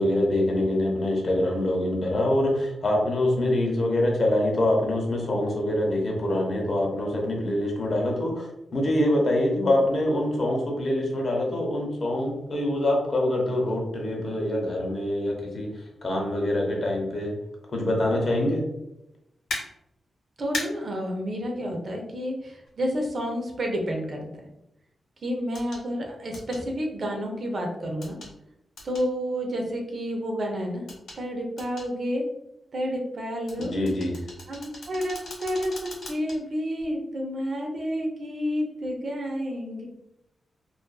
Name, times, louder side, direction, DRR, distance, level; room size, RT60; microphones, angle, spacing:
voice 1, 0.0-15.7 16.0-17.3 17.7-18.7 33.6-34.1, left 1 dB, 50° left, -1 dB, 0.8 m, -25 dB
sound 1, 19.5-19.6 20.5-20.7 22.7-22.8 25.5-25.8 26.3-26.6 28.0-28.3 28.8-29.1 30.9-31.2 31.6-31.9 33.5-36.4 36.8-36.9, left 1 dB, 80° left, 1.1 m, -37 dB
voice 2, 20.4-24.5 25.2-28.2 28.8-30.8 31.2-32.2 32.7-33.7 34.5-39.8, equal, 55° right, 1 dB, 0.6 m, -30 dB
2.5 x 2.4 x 2.2 m, 0.84 s
cardioid pair, 85°, 0 cm